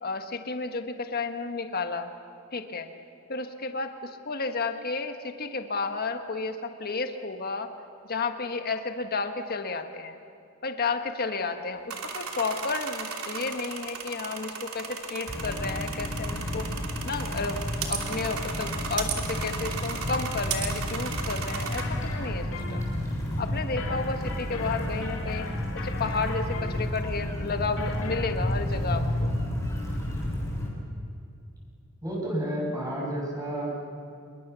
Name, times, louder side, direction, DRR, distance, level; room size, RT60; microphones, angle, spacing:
voice 1, 0.0-2.1 2.5-2.9 3.3-7.7 8.1-10.2 10.6-16.7 17.0-17.6 17.9-21.8 22.2-22.8 23.4-25.5 25.8-29.3, left 4 dB, 45° left, 7 dB, 1.4 m, -32 dB
sound 1, 11.9-21.8, right 6 dB, 85° right, 2.9 m, -35 dB
sound 2, 15.3-30.7, left 1 dB, 15° left, 7.1 m, -31 dB
sound 3, 21.6-28.3, left 4 dB, 65° left, 2.7 m, -41 dB
voice 2, 32.0-33.7, right 1 dB, 15° right, -4 dB, 7.2 m, -30 dB
26.5 x 22.5 x 6.9 m, 2.6 s
head